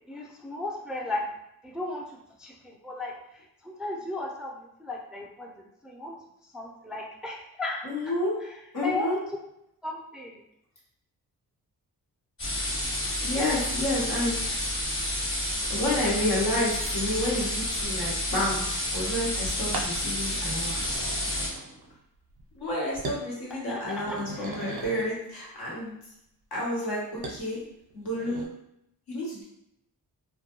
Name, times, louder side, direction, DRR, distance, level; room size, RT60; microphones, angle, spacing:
voice 1, 0.1-1.2 1.6-2.1 2.4-3.1 3.6-5.5 5.8-6.1 6.5-7.8 8.8-9.1 9.8-10.4 23.7-24.5, left 2 dB, ahead, -1 dB, 0.4 m, -35 dB
voice 2, 7.8-8.4 8.7-9.2 13.2-14.6 15.7-20.9 21.3-21.4 22.5-26.0 26.5-27.6 27.9-28.5 29.1-29.4, left 1 dB, 75° left, -5 dB, 1.1 m, -30 dB
sound 1, 12.4-21.5, left 1 dB, 35° left, 1.1 m, -30 dB
sound 2, 18.4-18.7 19.7-20.0 20.5-22.0 22.3-22.7 23.0-23.3 23.7-25.2 27.2-27.4 27.9-28.5, right 3 dB, 75° right, 0.5 m, -39 dB
2.2 x 2.2 x 2.9 m, 0.80 s
cardioid pair, 55°, 38 cm